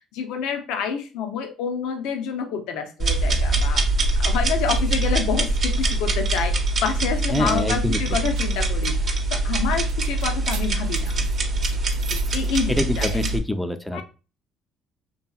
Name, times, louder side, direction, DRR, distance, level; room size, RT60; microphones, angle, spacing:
voice 1, 0.1-8.9 9.3-11.1 12.1-13.3 13.9-14.0, left 6 dB, 75° left, 6 dB, 0.5 m, -28 dB
sound 1, 3.0-13.4, right 2 dB, 50° right, 0.7 m, -23 dB
voice 2, 7.3-8.2 12.7-14.0, left 1 dB, 5° left, 8 dB, 0.4 m, -25 dB
sound 2, 8.0-13.3, right 7 dB, 85° right, 0.4 m, -43 dB
2.7 x 2.7 x 2.3 m, 0.33 s
supercardioid pair, 70°, 0 cm